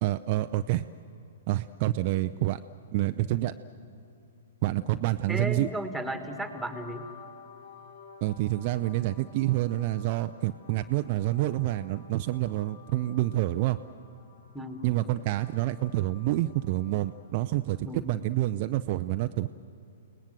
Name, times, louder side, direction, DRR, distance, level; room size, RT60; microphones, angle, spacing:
voice 1, 0.0-0.8 1.5-2.6 2.9-3.5 4.6-5.7 8.2-13.8 14.8-19.5, right 16 dB, 45° right, 9 dB, 0.5 m, -28 dB
voice 2, 5.3-7.1 14.5-14.8 17.8-18.1, right 1 dB, ahead, 7 dB, 1.9 m, -34 dB
sound 1, 6.3-17.9, left 6 dB, 75° left, 4.8 m, -53 dB
30.0 x 19.0 x 7.7 m, 2.7 s
figure-of-eight pair, 115°, 0 cm